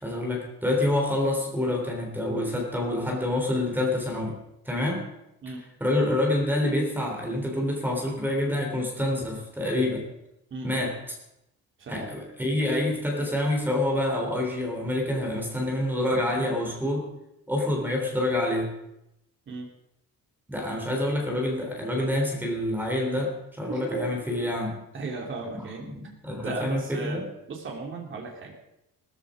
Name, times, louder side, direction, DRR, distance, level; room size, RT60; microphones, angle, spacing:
voice 1, 0.0-4.4 4.6-5.0 5.8-10.0 10.6-10.9 11.9-17.1 17.5-18.7 20.5-24.8 25.9-27.3, left 1 dB, 5° right, 1 dB, 3.4 m, -27 dB
voice 2, 10.5-10.9 11.8-12.1 19.5-19.7 23.7-24.2 24.9-28.5, right 4 dB, 35° right, 0 dB, 2.9 m, -36 dB
16.5 x 14.5 x 5.1 m, 0.86 s
cardioid pair, 180°, 34 cm